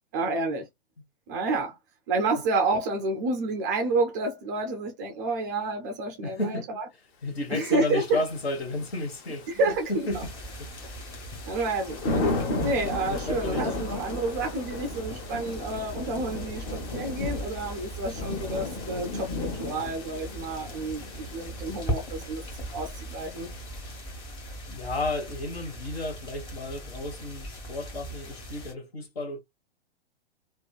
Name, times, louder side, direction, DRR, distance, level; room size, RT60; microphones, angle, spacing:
voice 1, 0.1-0.7 1.3-1.8 2.1-6.8 7.5-8.2 9.5-10.2 11.5-12.2 12.6-23.5, right 2 dB, 20° right, 0.3 m, -29 dB
voice 2, 6.2-6.7 7.2-10.3 10.6-11.0 13.1-13.7 24.7-29.4, left 2 dB, 75° left, 1.2 m, -33 dB
Thunder / Rain, 7.7-24.3, left 2 dB, 30° left, 0.9 m, -35 dB
sound 1, 10.1-28.7, right 1 dB, 15° left, 1.2 m, -39 dB
2.6 x 2.4 x 2.2 m
figure-of-eight pair, 110°, 31 cm